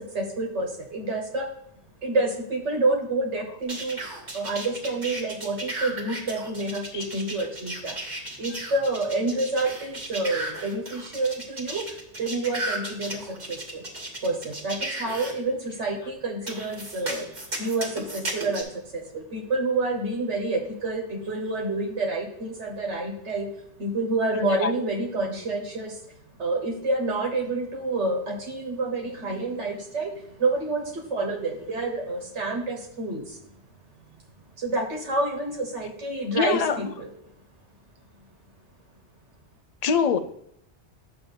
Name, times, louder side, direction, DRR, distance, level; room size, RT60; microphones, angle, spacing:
voice 1, 0.0-1.5 2.0-8.0 8.4-13.9 14.2-26.0 26.4-33.4 34.6-37.1, right 2 dB, 90° right, 1.5 m, -28 dB
sound 1, 3.7-15.3 16.5-18.6, right 1 dB, 40° right, 1.7 m, -34 dB
voice 2, 36.4-36.8 39.8-40.2, left 6 dB, 50° left, 0.5 m, -23 dB
9.5 x 3.3 x 6.9 m
omnidirectional pair, 1.1 m